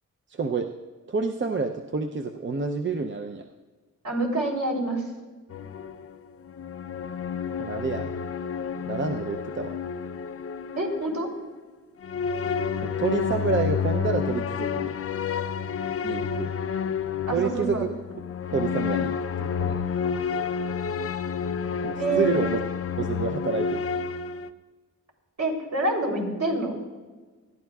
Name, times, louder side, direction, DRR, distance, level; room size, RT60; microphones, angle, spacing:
voice 1, 0.3-0.7 1.1-3.4 7.6-8.1 8.9-9.7 12.8-14.9 16.0-16.5 17.3-17.9 18.5-19.8 21.8-22.6 23.0-23.8, right 5 dB, 35° right, 4 dB, 0.6 m, -28 dB
voice 2, 4.0-5.1 10.8-11.3 17.3-17.9 22.0-22.3 25.4-26.7, right 2 dB, 60° right, -1 dB, 3.4 m, -26 dB
sound 1, 5.5-11.4 12.0-24.5, left 7 dB, 45° left, 0.5 m, -30 dB
20.0 x 13.5 x 2.4 m, 1.3 s
wide cardioid pair, 110°, 32 cm